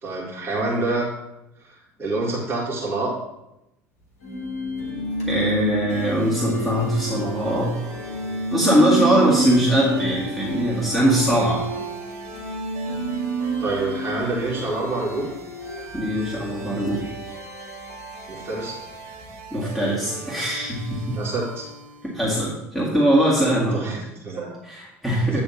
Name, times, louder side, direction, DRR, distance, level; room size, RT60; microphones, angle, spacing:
voice 1, 0.0-1.0 1.7-3.1 13.6-15.3 18.3-18.8 21.1-21.7 23.7-24.5 25.3-25.4, right 2 dB, 30° right, -6 dB, 2.0 m, -27 dB
sound 1, 4.2-19.3, right 2 dB, 70° left, 1.5 m, -30 dB
voice 2, 5.3-8.0 8.5-11.6 15.9-17.1 19.5-21.2 22.0-23.9 24.6-25.4, equal, ahead, -7 dB, 2.2 m, -21 dB
sound 2, 5.9-22.3, right 3 dB, 60° right, 1.0 m, -41 dB
9.1 x 3.5 x 5.9 m, 0.91 s
figure-of-eight pair, 65°, 8 cm